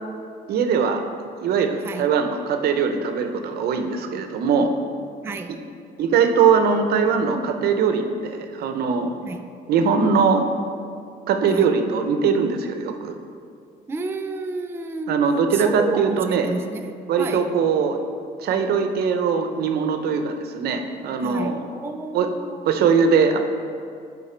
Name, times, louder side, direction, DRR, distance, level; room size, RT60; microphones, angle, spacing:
voice 1, 0.5-1.0 1.4-4.7 6.0-9.2 9.7-10.5 11.3-13.2 15.1-16.5 17.1-18.0 18.4-21.6 22.1-22.3 22.7-23.4, right 6 dB, 70° right, 6 dB, 0.7 m, -21 dB
voice 2, 1.8-2.1 5.2-5.6 9.2-9.5 11.5-11.7 13.9-15.2 15.5-17.5 21.2-22.7, right 3 dB, 15° right, 6 dB, 0.4 m, -31 dB
10.5 x 3.9 x 4.4 m, 2.4 s
cardioid pair, 110°, 17 cm